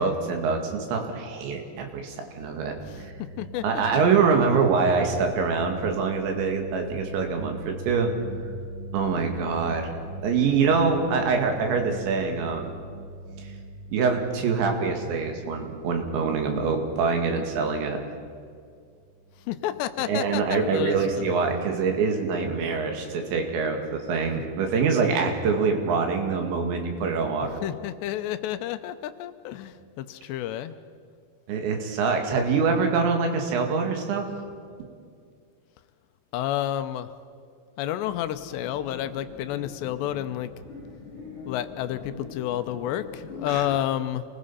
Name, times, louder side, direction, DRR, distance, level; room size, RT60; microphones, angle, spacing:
voice 1, 0.0-3.1 3.6-8.1 8.9-9.9 10.2-12.7 13.4-13.5 13.9-18.0 20.1-27.6 31.5-34.3 43.5-43.6, right 5 dB, 90° right, 4 dB, 4.5 m, -25 dB
sound 1, 2.7-17.8 19.0-19.8, right 2 dB, 65° right, 2.5 m, -41 dB
voice 2, 2.9-3.8 19.5-21.4 27.6-30.8 36.3-37.1 37.8-40.5 41.5-44.2, left 12 dB, 85° left, 11 dB, 2.9 m, -30 dB
sound 2, 38.0-43.8, left 4 dB, 30° left, 7.9 m, -42 dB
27.5 x 20.0 x 5.6 m, 2.2 s
omnidirectional pair, 5.0 m